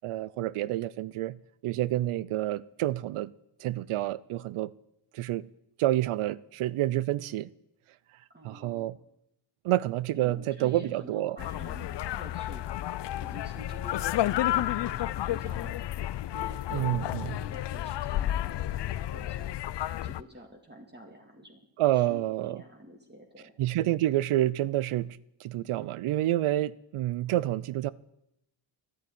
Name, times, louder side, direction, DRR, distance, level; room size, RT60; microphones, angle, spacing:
voice 1, 0.0-1.4 1.6-3.3 3.6-4.7 5.1-5.5 5.8-7.5 8.4-9.0 9.6-11.4 16.7-17.3 21.8-22.6 23.6-27.9, right 14 dB, 80° right, 0.6 m, -28 dB
voice 2, 8.3-8.9 10.2-15.8 16.3-19.5 20.0-21.6 21.9-23.5, right 1 dB, 20° right, 2.2 m, -48 dB
sound 1, 11.4-20.2, left 13 dB, 55° left, 0.6 m, -31 dB
11.0 x 8.3 x 9.7 m
cardioid pair, 55°, 50 cm